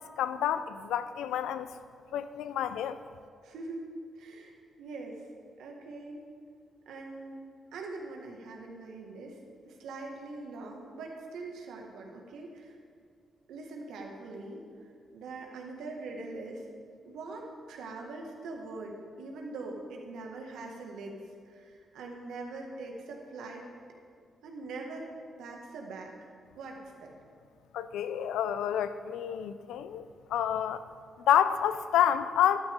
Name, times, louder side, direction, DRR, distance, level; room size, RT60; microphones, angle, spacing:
voice 1, 0.2-1.7 2.1-3.0 27.7-30.8 31.3-32.6, left 10 dB, 80° left, 12 dB, 0.5 m, -28 dB
voice 2, 3.4-4.5 4.8-5.2 5.6-6.3 6.9-12.8 13.5-14.6 15.1-16.6 17.1-21.2 21.5-23.6 24.4-25.1 25.4-26.1 26.6-27.1, right 3 dB, 80° right, 1 dB, 1.9 m, -42 dB
14.0 x 12.5 x 3.7 m, 2.2 s
supercardioid pair, 45°, 0 cm